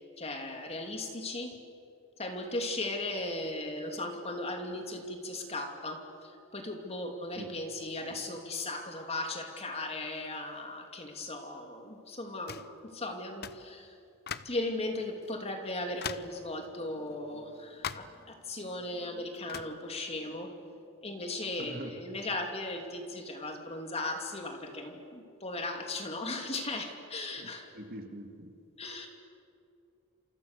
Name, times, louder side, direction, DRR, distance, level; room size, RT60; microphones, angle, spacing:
voice 1, 0.2-1.6 2.2-12.6 12.9-13.9 14.4-20.6 21.0-27.7 28.8-29.1, left 2 dB, 30° left, 4 dB, 2.8 m, -37 dB
sound 1, 12.5-12.8 13.4-13.7 14.3-14.6 15.2-15.3 16.0-16.4 17.8-18.2 19.5-19.8, left 7 dB, 50° left, 0.7 m, -39 dB
voice 2, 21.6-22.0 27.4-27.5 27.7-28.5, right 1 dB, 45° right, 5 dB, 2.2 m, -43 dB
28.5 x 28.0 x 6.9 m, 2.4 s
head